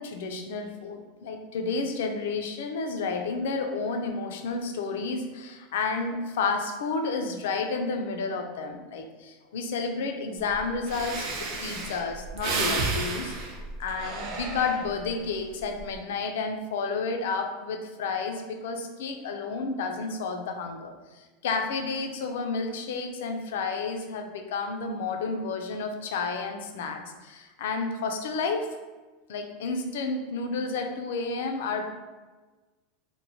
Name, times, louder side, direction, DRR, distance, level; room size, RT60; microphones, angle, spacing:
voice 1, 0.0-13.3 13.8-28.7 29.3-31.8, left 4 dB, 85° left, 5 dB, 0.3 m, -31 dB
Breathing, 10.5-10.6 10.9-15.1 15.6-16.0, right 3 dB, 55° right, 0.5 m, -32 dB
3.0 x 2.1 x 2.7 m, 1.3 s
supercardioid pair, 150°, 0 cm